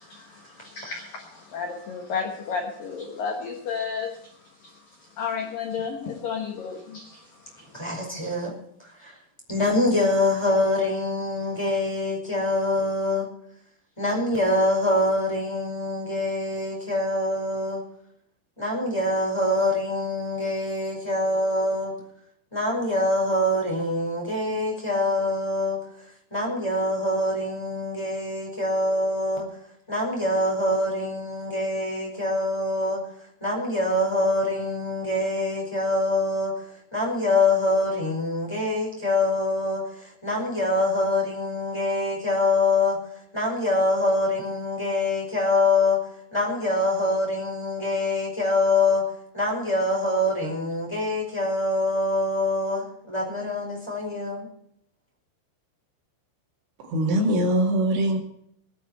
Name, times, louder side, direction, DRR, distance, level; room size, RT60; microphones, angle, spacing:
voice 1, 0.0-8.1, left 6 dB, 65° left, 1 dB, 2.4 m, -33 dB
voice 2, 7.7-8.5 8.8-9.1 9.5-13.3 14.0-17.8 18.6-21.9 22.5-25.8 26.3-29.4 29.9-33.0 33.4-36.5 36.9-43.0 43.3-46.0 46.3-49.0 49.3-54.5, left 2 dB, 5° left, -2 dB, 4.4 m, -24 dB
voice 3, 56.8-58.2, right 1 dB, 65° right, 1 dB, 4.1 m, -22 dB
19.5 x 11.0 x 4.4 m, 0.70 s
omnidirectional pair, 5.9 m